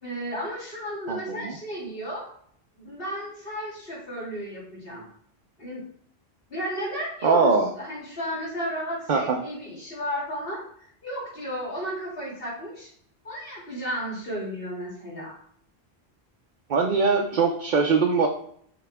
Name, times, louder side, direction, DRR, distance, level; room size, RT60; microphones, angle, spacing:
voice 1, 0.0-2.2 2.8-5.1 5.6-5.8 6.5-12.9 13.2-15.4, equal, 60° left, -6 dB, 3.1 m, -33 dB
voice 2, 1.1-1.6 7.2-7.7 9.1-9.4 16.7-18.3, right 4 dB, 50° right, 1 dB, 0.8 m, -22 dB
5.8 x 4.7 x 3.4 m, 0.65 s
omnidirectional pair, 1.1 m